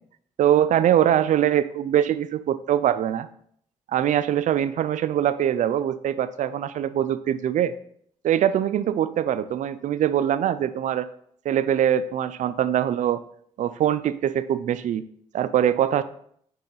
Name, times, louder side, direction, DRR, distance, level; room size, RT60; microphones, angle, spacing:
voice 1, 0.4-3.3 3.9-7.7 8.2-11.1 11.4-13.2 13.6-15.0 15.3-16.0, right 10 dB, 70° right, 13 dB, 0.4 m, -23 dB
5.4 x 3.9 x 5.6 m, 0.65 s
cardioid pair, 65°, 13 cm